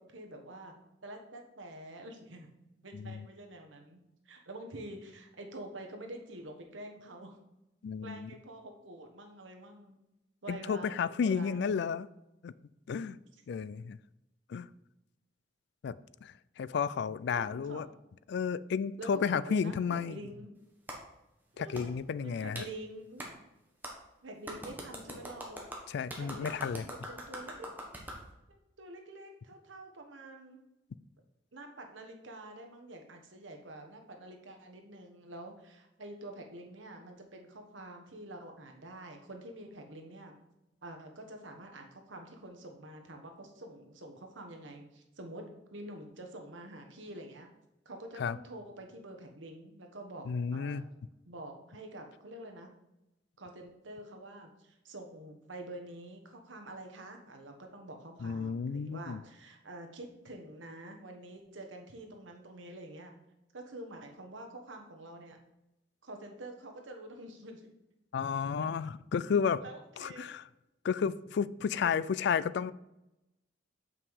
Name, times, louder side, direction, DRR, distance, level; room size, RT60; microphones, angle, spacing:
voice 1, 0.1-0.7 1.0-2.5 2.8-4.0 4.2-7.4 8.0-10.0 10.4-12.0 17.3-17.9 19.0-20.5 21.5-21.9 22.2-23.2 24.2-25.7 26.2-27.7 28.5-30.6 31.5-40.3 40.8-47.5 47.8-50.8 51.3-52.7 53.4-63.1 63.5-65.4 66.0-67.7 68.6-68.7 69.6-70.3 71.8-71.9, right 1 dB, 85° right, 3 dB, 1.3 m, -47 dB
voice 2, 2.9-3.3 7.8-8.3 10.5-12.1 12.4-12.5 12.9-13.2 13.5-14.0 14.5-14.7 15.8-17.9 18.3-20.3 21.6-22.7 25.9-26.9 48.2-48.4 50.3-50.8 58.2-59.2 68.1-69.6 70.0-70.4 70.8-72.7, left 6 dB, 65° left, 18 dB, 0.3 m, -32 dB
Clapping, 20.9-21.0 21.7-21.9 22.5-22.7 23.2-23.3 23.8-23.9 24.5-28.2, right 1 dB, 10° right, 1.4 m, -42 dB
7.3 x 5.8 x 4.7 m, 0.92 s
head